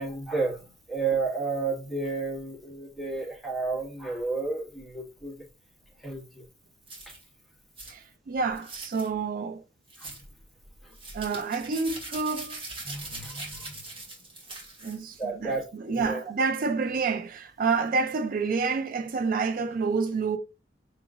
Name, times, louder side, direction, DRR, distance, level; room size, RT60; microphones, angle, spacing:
voice 1, 0.0-5.4 6.0-6.4 7.1-7.2 10.0-10.2 10.8-10.9 12.8-13.9 15.2-16.2, right 3 dB, ahead, 1.5 m, -32 dB
sound 1, 6.9-7.2 7.8-7.9 8.6-9.1 9.9-10.2 10.9-15.2, right 2 dB, 30° right, 1.9 m, -41 dB
voice 2, 7.9-9.6 11.1-12.6 14.8-20.4, right 4 dB, 50° right, 0.4 m, -28 dB
6.1 x 3.0 x 2.4 m
head